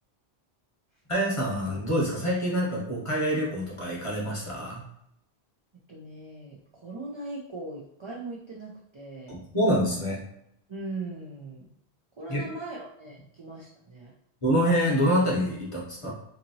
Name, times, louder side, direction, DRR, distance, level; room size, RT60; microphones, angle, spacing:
voice 1, 1.1-4.8 9.3-10.2 12.3-12.4 14.4-16.1, equal, 35° left, -4 dB, 0.8 m, -26 dB
voice 2, 5.9-9.4 10.7-11.7 12.2-14.1, right 2 dB, 50° right, -4 dB, 0.3 m, -39 dB
2.8 x 2.7 x 2.6 m, 0.75 s
omnidirectional pair, 1.1 m